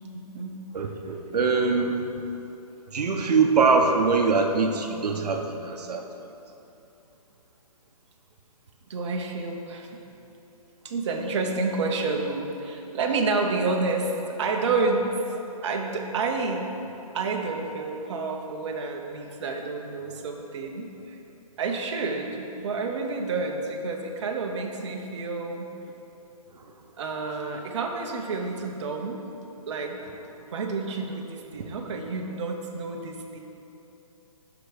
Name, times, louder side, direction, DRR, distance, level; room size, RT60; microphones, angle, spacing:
voice 1, 0.7-2.1 2.9-6.0 26.5-26.6 31.6-31.7, right 4 dB, 90° right, 3 dB, 0.8 m, -23 dB
voice 2, 8.9-9.9 10.8-15.1 15.4-16.7 17.1-21.2 21.6-25.7 27.0-29.2 29.7-30.0 30.4-33.4, right 3 dB, 50° right, 1 dB, 0.7 m, -29 dB
6.1 x 5.8 x 5.0 m, 3.0 s
hypercardioid pair, 160°, 20 cm